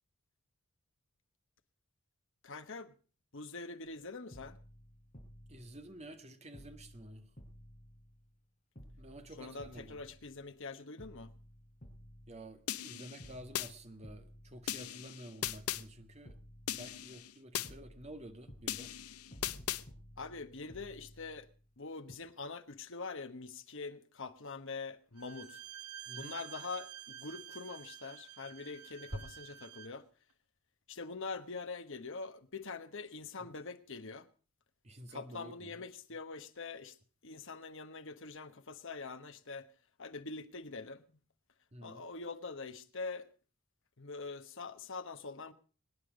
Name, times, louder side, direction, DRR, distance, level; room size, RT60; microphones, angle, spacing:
voice 1, 2.4-2.9 3.3-4.6 9.4-11.3 20.2-21.5 21.8-25.6 26.2-30.0 30.9-34.3 35.1-37.0 37.2-39.7 40.0-41.0 41.8-43.3 44.0-45.5, left 4 dB, 60° left, 1.2 m, -44 dB
sound 1, 3.8-4.0 4.3-6.2 6.5-8.4 8.8-10.6 11.0-12.9 13.2-15.1 15.4-17.3 17.6-21.8 22.1-22.2, equal, 35° left, 3.9 m, -55 dB
voice 2, 5.5-7.3 9.0-10.1 12.3-16.3 16.7-18.9 26.1-26.4 34.8-35.9 41.7-42.0, right 1 dB, 30° right, 1.6 m, -51 dB
sound 2, 12.7-13.7 14.7-15.8 16.7-17.7 18.7-19.8, left 11 dB, 80° left, 0.7 m, -38 dB
Bowed string instrument, 25.2-30.0, right 11 dB, 90° right, 1.5 m, -49 dB
23.5 x 9.9 x 5.1 m
head